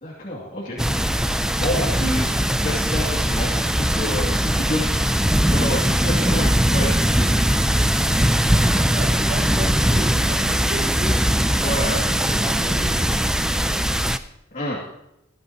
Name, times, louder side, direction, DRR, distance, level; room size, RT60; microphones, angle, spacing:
voice 1, 0.0-0.8 1.5-5.0 5.5-7.3 8.8-8.9 11.6-12.0 14.5-14.8, left 1 dB, 40° left, -5 dB, 2.5 m, -28 dB
sound 1, 0.8-14.2, equal, 5° right, 0.4 m, -20 dB
voice 2, 8.3-11.2 11.5-13.9, right 1 dB, 50° right, 0 dB, 2.3 m, -35 dB
19.5 x 12.5 x 3.0 m, 0.87 s
head